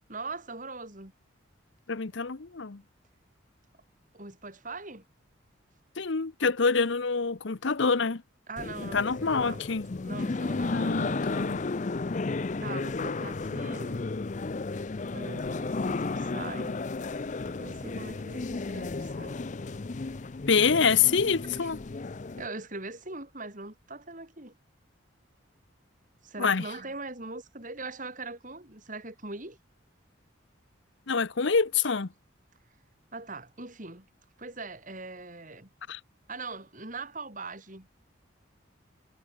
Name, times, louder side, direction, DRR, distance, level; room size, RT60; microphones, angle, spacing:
voice 1, 0.1-1.1 4.1-5.0 8.5-9.6 10.0-11.3 12.6-14.0 15.0-16.8 17.6-19.4 21.6-21.7 22.3-24.6 26.2-29.6 33.1-34.1 34.4-35.7 36.3-37.9, right 3 dB, 40° right, 4.5 m, -41 dB
voice 2, 1.9-2.8 6.0-8.2 8.9-9.9 10.7-11.6 20.5-21.8 26.4-26.6 31.1-32.1 35.9-36.0, left 5 dB, 65° left, 0.8 m, -26 dB
sound 1, 8.6-22.5, left 3 dB, 35° left, 0.5 m, -33 dB
head